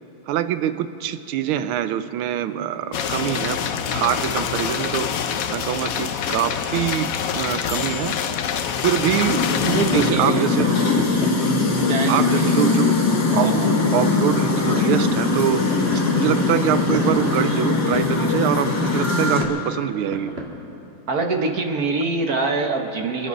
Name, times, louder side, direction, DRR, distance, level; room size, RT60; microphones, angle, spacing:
voice 1, 0.3-3.6 3.9-5.2 5.5-8.2 8.8-11.2 12.1-15.7 16.1-20.3, right 10 dB, 80° right, 11 dB, 1.5 m, -24 dB
sound 1, 2.9-10.1, left 7 dB, 70° left, 0.8 m, -26 dB
sound 2, 9.3-19.4, left 3 dB, 50° left, 2.0 m, -21 dB
sound 3, 9.5-20.4, right 1 dB, 30° right, 2.1 m, -37 dB
voice 2, 9.6-10.4 11.9-12.8 13.4-13.7 21.1-23.3, right 3 dB, 50° right, 3 dB, 1.4 m, -24 dB
26.0 x 10.5 x 5.4 m, 2.9 s
omnidirectional pair, 2.3 m